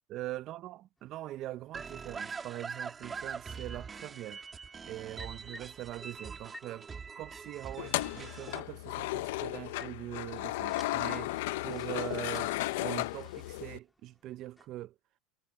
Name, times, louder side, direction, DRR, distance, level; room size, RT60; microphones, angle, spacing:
voice 1, 0.1-4.4 4.9-6.9 7.2-11.3 11.6-12.5 12.8-14.9, right 15 dB, 45° right, 0.6 m, -42 dB
sound 1, 1.0-14.7, left 1 dB, 5° left, 3.2 m, -59 dB
sound 2, 1.7-8.6, right 5 dB, 20° right, 2.4 m, -43 dB
sound 3, 7.8-13.8, left 18 dB, 80° left, 0.6 m, -34 dB
supercardioid pair, 125°, 0 cm